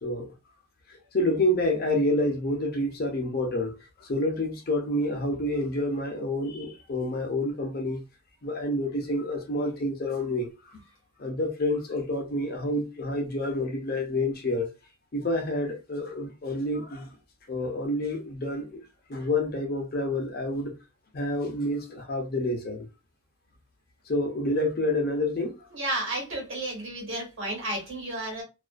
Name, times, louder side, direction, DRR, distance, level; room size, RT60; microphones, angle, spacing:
voice 1, 0.0-0.3 0.9-3.8 4.0-8.0 8.4-10.5 11.2-14.7 15.1-17.1 17.5-18.8 19.1-20.7 21.1-22.9 24.1-25.7, left 1 dB, 45° left, 0.5 m, -28 dB
voice 2, 25.7-28.4, right 1 dB, 65° right, 1.2 m, -32 dB
2.4 x 2.2 x 2.3 m
head